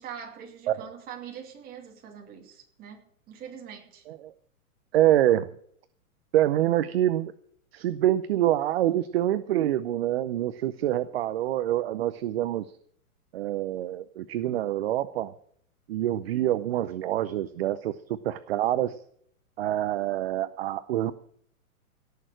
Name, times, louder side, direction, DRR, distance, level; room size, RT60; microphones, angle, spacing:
voice 1, 0.0-4.0, right 8 dB, 20° right, 1 dB, 2.6 m, -43 dB
voice 2, 4.9-5.5 6.3-7.3 7.7-12.7 13.3-15.3 15.9-19.0 19.6-21.1, right 13 dB, 45° right, 13 dB, 0.6 m, -26 dB
17.5 x 6.6 x 7.7 m, 0.63 s
hypercardioid pair, 155°, 44 cm